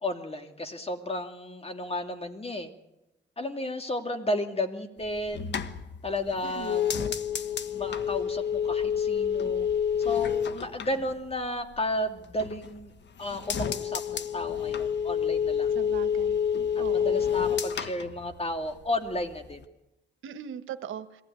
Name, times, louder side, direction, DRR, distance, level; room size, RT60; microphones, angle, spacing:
voice 1, 0.0-2.7 3.4-5.6 6.0-7.1 7.7-9.7 10.0-12.9 13.2-15.8 16.9-19.6, left 1 dB, 30° left, 6 dB, 2.6 m, -33 dB
sound 1, 5.0-11.8 12.2-12.9 13.2-18.9 19.2-19.6, left 8 dB, 65° left, 1.3 m, -29 dB
voice 2, 6.4-6.7 15.7-16.4 16.8-17.2 20.2-21.0, right 9 dB, 90° right, 10 dB, 1.3 m, -39 dB
22.0 x 16.0 x 9.5 m, 0.92 s
cardioid pair, 80°, 20 cm